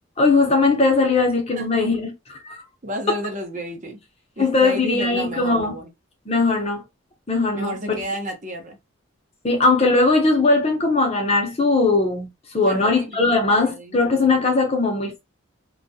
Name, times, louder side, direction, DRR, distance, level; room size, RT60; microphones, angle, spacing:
voice 1, 0.2-2.6 3.1-3.2 4.4-5.7 6.3-6.8 7.3-8.0 9.4-12.3 12.5-15.2, left 3 dB, 30° left, 0.7 m, -19 dB
voice 2, 2.8-4.0 4.4-5.9 7.6-8.8 12.7-14.4, equal, 40° right, 0.6 m, -32 dB
2.3 x 2.1 x 2.6 m
head